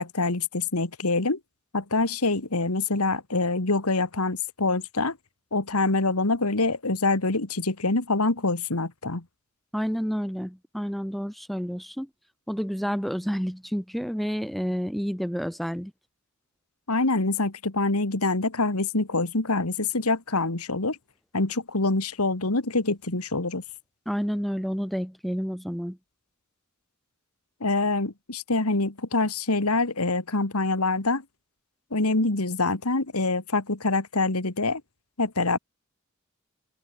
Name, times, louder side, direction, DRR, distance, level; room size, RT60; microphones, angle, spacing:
voice 1, 0.0-1.4 1.7-5.2 5.5-9.2 16.9-21.0 21.3-23.6 27.6-31.2 31.9-34.8 35.2-35.6, left 3 dB, 90° left, 2.3 m, -25 dB
voice 2, 9.7-12.1 12.5-15.9 24.1-26.0, equal, ahead, 2.2 m, -29 dB
open air
head